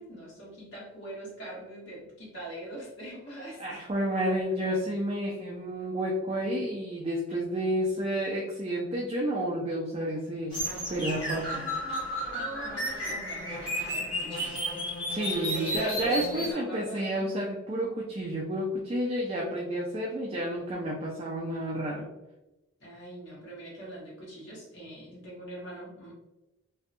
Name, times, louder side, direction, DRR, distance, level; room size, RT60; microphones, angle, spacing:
voice 1, 0.0-3.8 4.3-4.4 7.3-7.4 12.3-14.5 15.5-17.4 22.8-26.1, right 1 dB, 60° left, -5 dB, 1.1 m, -42 dB
voice 2, 3.6-10.6 10.9-11.6 15.1-22.1, right 1 dB, 30° right, -3 dB, 0.3 m, -30 dB
sound 1, 10.5-16.5, equal, 20° left, 1.2 m, -33 dB
2.6 x 2.2 x 2.5 m, 0.99 s
head